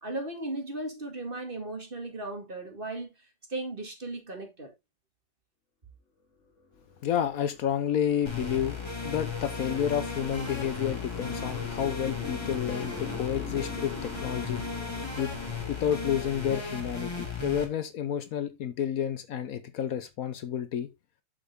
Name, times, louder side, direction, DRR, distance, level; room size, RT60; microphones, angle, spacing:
voice 1, 0.0-3.1 3.5-4.7, right 2 dB, 35° right, 2.3 m, -36 dB
sound 1, 6.5-17.1, left 4 dB, 50° left, 1.9 m, -43 dB
voice 2, 7.0-8.8 9.0-14.8 15.2-15.3 15.7-20.9, left 9 dB, 65° left, 1.2 m, -30 dB
sound 2, 8.3-17.7, left 4 dB, 15° left, 2.1 m, -36 dB
7.1 x 7.0 x 3.5 m
omnidirectional pair, 1.7 m